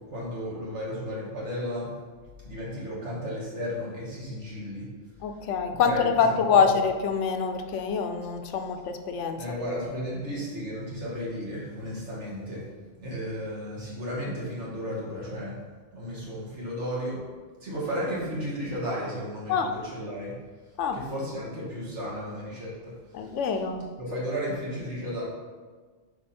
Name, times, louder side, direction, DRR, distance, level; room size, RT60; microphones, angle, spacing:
voice 1, 0.1-1.9 2.4-4.9 5.8-6.6 9.4-12.6 13.0-15.6 15.9-17.2 17.6-20.3 20.9-23.3 24.0-25.2, equal, 75° right, -6 dB, 2.3 m, -34 dB
voice 2, 5.2-9.4 19.5-19.7 20.8-21.0 23.1-23.9, left 6 dB, 85° left, 6 dB, 1.0 m, -25 dB
6.9 x 4.9 x 4.3 m, 1.4 s
omnidirectional pair, 1.2 m